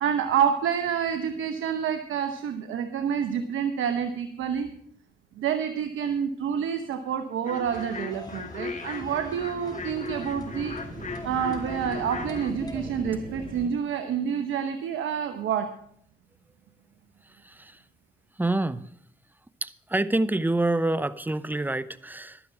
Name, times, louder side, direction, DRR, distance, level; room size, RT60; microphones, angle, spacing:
voice 1, 0.0-4.7 5.4-10.8 11.2-15.8, right 8 dB, 75° right, 9 dB, 0.9 m, -28 dB
sound 1, 7.4-12.5, left 4 dB, 35° left, 1.7 m, -38 dB
sound 2, 7.6-12.9, left 2 dB, 20° left, 2.4 m, -44 dB
sound 3, 8.5-13.7, right 1 dB, 50° right, 3.7 m, -41 dB
voice 2, 17.4-17.8 18.4-18.9 19.6-22.4, right 2 dB, 10° right, 16 dB, 0.7 m, -27 dB
12.0 x 9.9 x 5.7 m, 0.65 s
hypercardioid pair, 45°, 21 cm